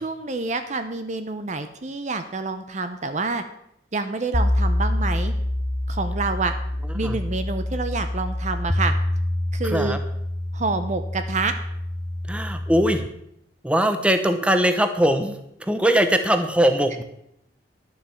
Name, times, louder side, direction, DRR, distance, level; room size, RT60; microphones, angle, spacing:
voice 1, 0.0-3.4 3.9-5.3 5.9-6.5 6.9-8.9 9.5-10.0 10.5-11.5, right 3 dB, 40° right, 9 dB, 0.7 m, -27 dB
sound 1, 4.3-13.1, left 1 dB, 10° left, 0.5 m, -26 dB
voice 2, 9.6-10.0 12.3-13.0 13.6-17.0, equal, 5° right, 8 dB, 0.9 m, -21 dB
11.0 x 7.4 x 7.0 m, 0.75 s
head